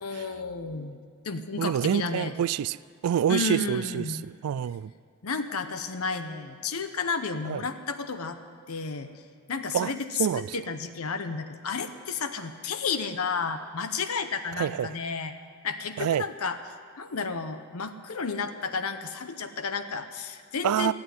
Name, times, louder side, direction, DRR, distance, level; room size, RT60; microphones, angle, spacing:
voice 1, 0.0-1.0 1.2-2.3 3.3-4.2 5.2-8.4 8.7-9.1 9.5-15.3 15.6-16.6 17.0-20.9, left 5 dB, 80° left, 0.8 m, -32 dB
voice 2, 1.6-2.8 3.0-4.9 7.4-7.6 9.7-9.9 10.2-10.6 14.6-14.9 16.0-16.3 20.6-20.9, right 9 dB, 85° right, 0.3 m, -27 dB
14.5 x 8.8 x 9.4 m
head